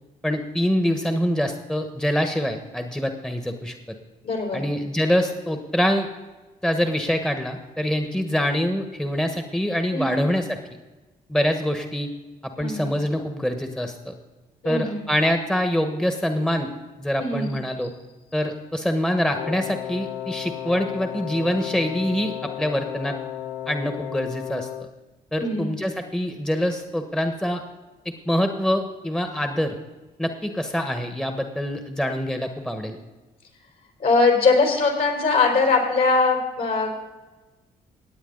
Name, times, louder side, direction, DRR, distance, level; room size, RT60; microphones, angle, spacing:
voice 1, 0.2-3.7 4.5-6.1 6.6-10.6 11.3-12.1 12.4-14.1 14.6-16.7 17.0-17.9 18.3-23.2 23.7-24.7 25.3-27.6 28.3-29.7 30.2-33.0, equal, 5° left, 6 dB, 1.3 m, -25 dB
voice 2, 4.2-4.6 9.9-10.3 12.6-12.9 14.6-15.0 17.2-17.5 25.4-25.7 34.0-37.2, left 3 dB, 60° left, 1 dB, 4.0 m, -21 dB
Wind instrument woodwind instrument, 19.3-25.0, left 11 dB, 80° left, 0.5 m, -34 dB
16.5 x 8.8 x 4.0 m, 1.2 s
hypercardioid pair, 50°, 18 cm